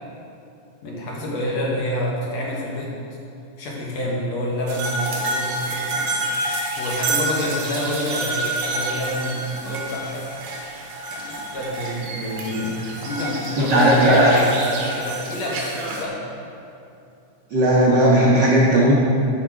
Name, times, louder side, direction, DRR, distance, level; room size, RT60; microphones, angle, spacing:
voice 1, 0.8-2.9 3.6-6.2 6.8-10.3 11.1-12.2 13.0-14.6 15.0-16.2, left 1 dB, 60° left, -3 dB, 2.3 m, -27 dB
sound 1, 4.7-16.0, right 2 dB, 65° right, 2.5 m, -28 dB
voice 2, 12.2-12.7 13.6-14.3 17.5-19.0, right 1 dB, 85° right, -5 dB, 0.9 m, -17 dB
11.5 x 6.4 x 4.7 m, 2.7 s
omnidirectional pair, 3.8 m